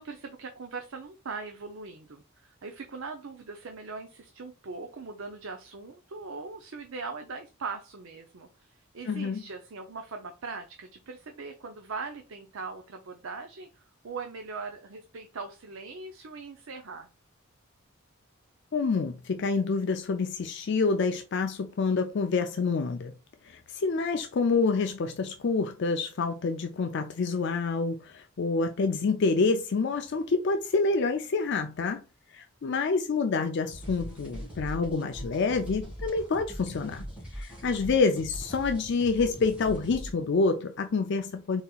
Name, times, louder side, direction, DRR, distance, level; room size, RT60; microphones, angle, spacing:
voice 1, 0.0-17.1, right 4 dB, 65° right, 0.6 m, -40 dB
voice 2, 9.1-9.4 18.7-23.1 23.4-32.0 32.3-37.0 37.3-41.6, left 4 dB, 50° left, 0.4 m, -27 dB
sound 1, 33.7-40.1, equal, 5° right, 2.2 m, -41 dB
4.2 x 4.0 x 2.3 m
head